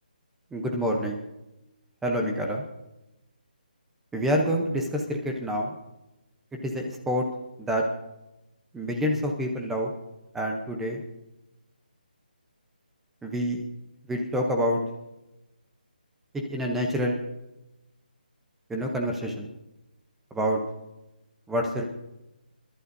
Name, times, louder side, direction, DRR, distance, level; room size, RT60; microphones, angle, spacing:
voice 1, 0.5-1.2 2.0-2.6 4.1-5.8 6.6-7.2 7.6-7.8 8.7-9.9 10.3-11.0 13.2-13.6 14.1-14.8 16.5-17.1 18.7-19.5 20.3-20.6 21.5-21.8, equal, 5° right, 2 dB, 0.8 m, -27 dB
29.5 x 11.5 x 2.7 m, 0.96 s
hypercardioid pair, 170°, 5 cm